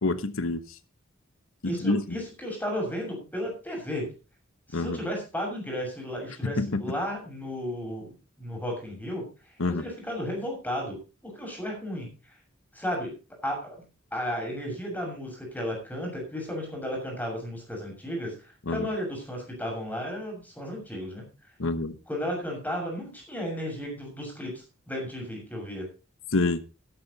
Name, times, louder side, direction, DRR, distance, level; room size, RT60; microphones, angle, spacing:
voice 1, 0.0-0.6 1.6-2.2 4.7-5.0 6.4-6.8 9.6-9.8 18.7-18.9 21.6-22.0 26.3-26.6, left 2 dB, 75° left, 1.1 m, -27 dB
voice 2, 1.6-4.1 4.7-9.3 9.7-11.0 11.2-12.1 12.7-13.1 13.4-13.8 14.1-18.3 18.7-21.3 22.1-25.9, equal, 10° left, 6.6 m, -34 dB
12.5 x 11.5 x 4.1 m
head